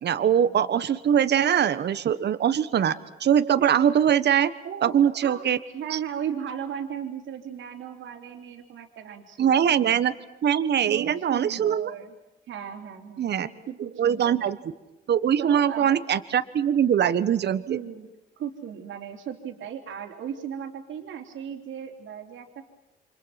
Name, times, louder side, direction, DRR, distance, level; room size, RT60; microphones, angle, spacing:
voice 1, 0.0-2.9 3.2-4.5 4.8-5.6 5.9-6.0 9.4-10.1 10.4-11.9 13.2-13.5 14.0-14.6 15.1-17.8, right 9 dB, 60° right, 12 dB, 1.4 m, -22 dB
voice 2, 4.6-4.9 5.2-5.4 5.7-9.7 10.9-12.1 12.5-14.4 15.4-16.0 17.7-18.1 18.4-22.6, right 8 dB, 75° right, 2 dB, 3.6 m, -36 dB
29.5 x 25.5 x 6.0 m, 0.98 s
cardioid pair, 90°, 20 cm